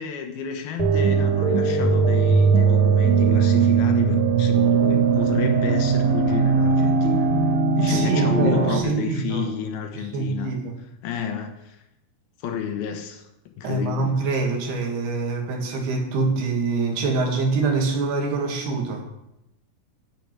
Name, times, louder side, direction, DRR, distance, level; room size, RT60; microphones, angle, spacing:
voice 1, 0.0-7.3 7.8-10.5 11.0-11.8 12.4-14.2, left 7 dB, 75° left, 5 dB, 3.2 m, -31 dB
sound 1, 0.8-8.8, right 5 dB, 55° right, 3.1 m, -19 dB
voice 2, 7.9-9.5 10.0-10.8 13.6-19.0, right 3 dB, 80° right, 1 dB, 4.3 m, -25 dB
10.0 x 8.4 x 9.0 m, 0.85 s
omnidirectional pair, 4.5 m